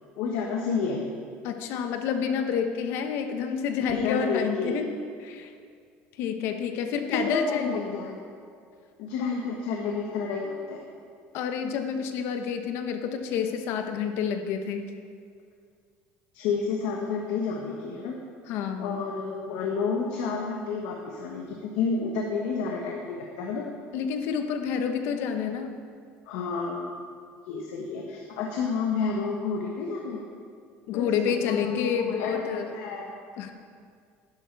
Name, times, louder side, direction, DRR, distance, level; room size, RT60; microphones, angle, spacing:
voice 1, 0.2-1.0 3.9-4.8 6.9-8.2 9.0-10.8 16.3-18.2 18.8-23.6 26.2-26.8 27.5-30.2 30.9-33.1, left 5 dB, 80° left, 0 dB, 1.3 m, -30 dB
voice 2, 1.4-4.9 5.2-5.5 6.2-7.9 11.3-14.9 18.5-19.0 23.9-25.7 30.9-32.7 33.4-33.5, left 7 dB, 55° left, 7 dB, 1.0 m, -29 dB
11.0 x 11.0 x 4.7 m, 2.2 s
cardioid pair, 175°, 5 cm